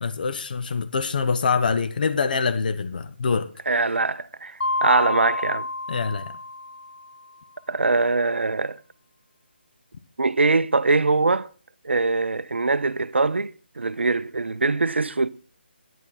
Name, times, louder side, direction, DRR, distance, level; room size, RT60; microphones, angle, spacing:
voice 1, 0.0-3.5 5.9-6.3, left 5 dB, 50° left, 0.8 m, -24 dB
voice 2, 3.7-5.7 7.7-8.8 10.2-11.5 11.8-15.3, right 3 dB, 75° right, 0.6 m, -22 dB
Mallet percussion, 4.6-7.2, left 2 dB, 70° left, 0.4 m, -29 dB
11.0 x 9.1 x 4.1 m
figure-of-eight pair, 155°, 6 cm